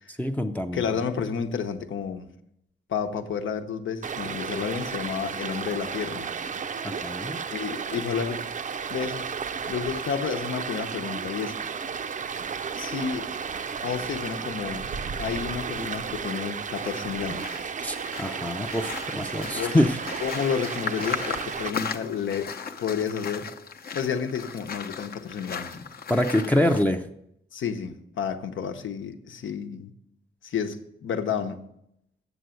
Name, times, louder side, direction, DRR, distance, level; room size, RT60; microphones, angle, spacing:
voice 1, 0.1-0.9 6.8-7.4 15.8-15.9 17.8-20.0 26.1-27.1, left 1 dB, 10° left, 0.5 m, -25 dB
voice 2, 0.7-2.3 2.9-6.3 7.5-8.4 8.9-9.3 9.6-11.5 12.7-13.3 13.8-14.8 15.2-17.6 19.5-19.8 20.2-22.5 22.8-23.5 23.9-25.8 27.5-29.9 30.4-31.6, left 7 dB, 80° left, 1.0 m, -30 dB
Stream, 4.0-21.7, right 6 dB, 40° right, 0.5 m, -33 dB
sound 1, 16.7-26.8, left 6 dB, 50° left, 0.8 m, -37 dB
8.0 x 7.0 x 7.7 m
wide cardioid pair, 135°, 20 cm